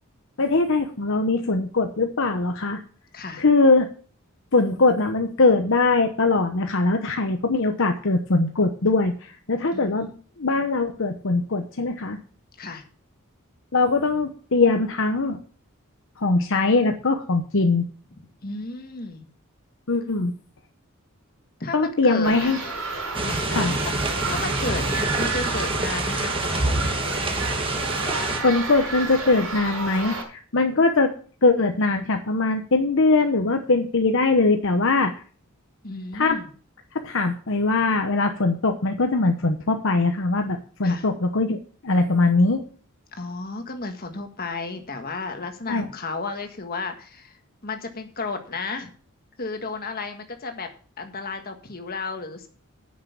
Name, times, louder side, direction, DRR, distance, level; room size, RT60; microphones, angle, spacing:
voice 1, 0.4-2.8 3.4-3.9 4.5-10.1 10.4-12.2 13.7-15.4 16.2-17.9 19.9-20.3 21.7-22.6 23.5-23.7 28.4-31.1 31.4-35.1 36.1-36.4 36.9-41.6 41.8-42.6 45.7-45.9, left 3 dB, 60° left, 5 dB, 1.0 m, -21 dB
voice 2, 9.7-10.2 12.6-12.8 18.4-19.3 21.6-22.5 23.2-23.9 24.3-26.9 35.8-36.5 40.8-41.1 43.1-48.9 49.4-50.7 51.0-52.5, left 3 dB, 45° left, 6 dB, 1.6 m, -33 dB
sound 1, 22.2-30.2, right 3 dB, 65° right, 5.8 m, -31 dB
sound 2, 23.1-28.4, right 2 dB, 25° right, 1.4 m, -27 dB
9.5 x 6.6 x 7.0 m, 0.41 s
head